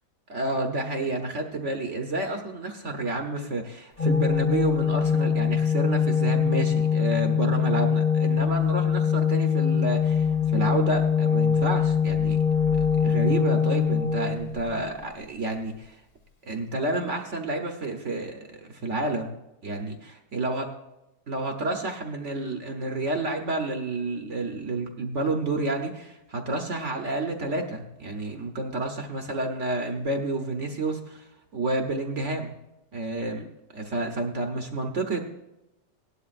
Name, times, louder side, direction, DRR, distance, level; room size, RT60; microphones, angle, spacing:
voice 1, 0.3-12.4 12.7-16.0 16.4-19.3 19.6-20.7 21.3-31.2 31.5-32.5 32.9-33.4 33.7-35.3, right 2 dB, 50° right, 4 dB, 1.1 m, -30 dB
Organ, 4.0-14.9, left 7 dB, 40° left, 0.6 m, -23 dB
17.5 x 11.5 x 2.5 m, 0.93 s
omnidirectional pair, 1.9 m